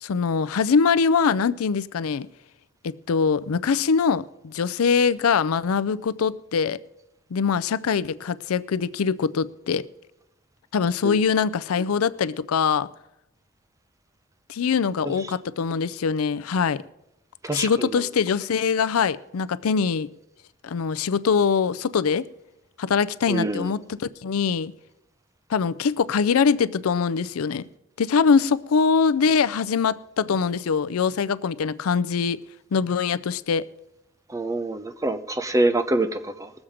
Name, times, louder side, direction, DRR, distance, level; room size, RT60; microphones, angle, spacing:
voice 1, 0.0-2.3 2.8-6.8 7.3-9.9 10.7-12.9 14.5-16.8 17.5-20.1 20.6-22.2 22.8-24.7 25.5-27.7 28.0-32.4 32.7-33.7, left 6 dB, 90° left, 0.5 m, -23 dB
voice 2, 17.4-18.0 23.3-23.7 34.3-36.5, right 2 dB, 15° right, 0.6 m, -25 dB
19.5 x 7.3 x 4.9 m
head